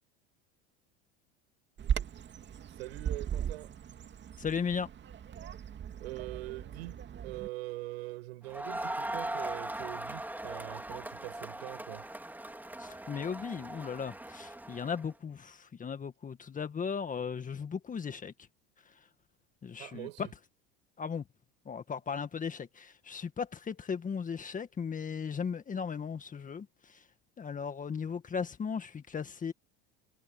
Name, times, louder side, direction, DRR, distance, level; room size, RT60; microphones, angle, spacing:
Bird vocalization bird call bird song, 1.8-7.5, right 8 dB, 35° right, 2.5 m, -38 dB
voice 1, 2.7-3.7 6.0-12.1 19.8-20.3, right 20 dB, 80° right, 6.7 m, -43 dB
voice 2, 4.4-4.9 12.8-18.5 18.8-19.1 19.6-20.3 21.0-21.3 21.7-27.1 27.4-29.5, left 6 dB, 25° left, 1.8 m, -37 dB
Crowd, 8.5-15.0, right 1 dB, 5° right, 3.6 m, -40 dB
hypercardioid pair, 95°, 31 cm